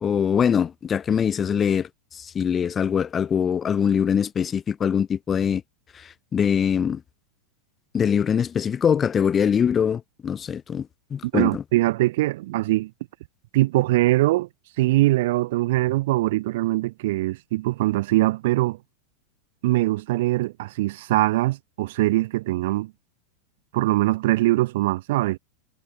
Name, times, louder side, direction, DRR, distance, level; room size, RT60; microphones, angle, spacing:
voice 1, 0.0-5.6 5.9-7.0 7.9-11.6, left 7 dB, 20° left, 0.8 m, -23 dB
voice 2, 11.3-12.9 13.5-14.5 14.8-18.8 19.6-22.9 23.7-25.4, right 18 dB, 50° right, 2.7 m, -22 dB
figure-of-eight pair, 90°, 0 cm